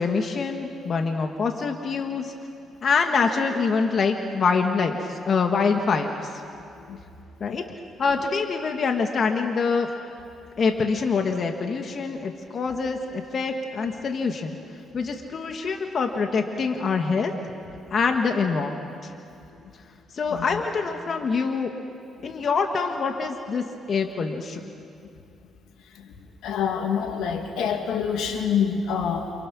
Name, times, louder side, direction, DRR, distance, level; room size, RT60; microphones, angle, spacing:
voice 1, 0.0-2.3 2.8-6.3 7.4-7.6 8.0-9.9 10.6-14.6 14.9-17.3 17.9-18.8 19.0-19.1 20.1-21.7 22.2-24.6, left 5 dB, 50° left, 4 dB, 1.7 m, -25 dB
voice 2, 26.4-29.3, left 7 dB, 85° left, 4 dB, 2.5 m, -26 dB
29.0 x 27.5 x 6.3 m, 2.6 s
cardioid pair, 90°, 0 cm